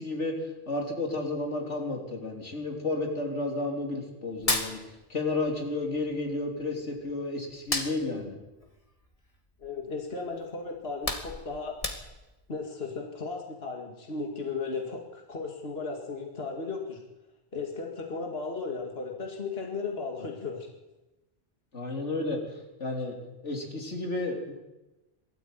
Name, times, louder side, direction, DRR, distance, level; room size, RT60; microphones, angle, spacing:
voice 1, 0.0-8.3 21.7-22.4 22.8-23.2 23.4-24.5, left 2 dB, 90° left, 2 dB, 3.7 m, -32 dB
Hands, 4.3-5.6 5.8-7.1 7.5-9.8 10.3-10.4 10.8-12.4, left 2 dB, 30° left, 2.2 m, -33 dB
voice 2, 9.6-11.7 12.5-17.0 17.5-20.7, left 4 dB, 60° left, 1 dB, 2.5 m, -35 dB
21.5 x 13.5 x 9.2 m, 1.0 s
omnidirectional pair, 1.2 m